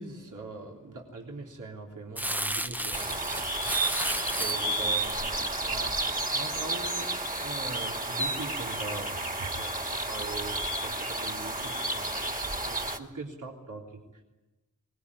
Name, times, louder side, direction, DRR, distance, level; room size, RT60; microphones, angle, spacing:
voice 1, 0.0-6.0 6.3-7.1 7.4-12.3 12.6-14.2, right 3 dB, 75° right, 0 dB, 3.5 m, -42 dB
Crumpling crinkling, 2.2-6.7 7.2-7.3, right 1 dB, 5° right, 0.9 m, -34 dB
sound 1, 2.9-13.0, right 2 dB, 25° right, 2.6 m, -31 dB
23.0 x 20.5 x 9.9 m, 1.1 s
wide cardioid pair, 95°, 32 cm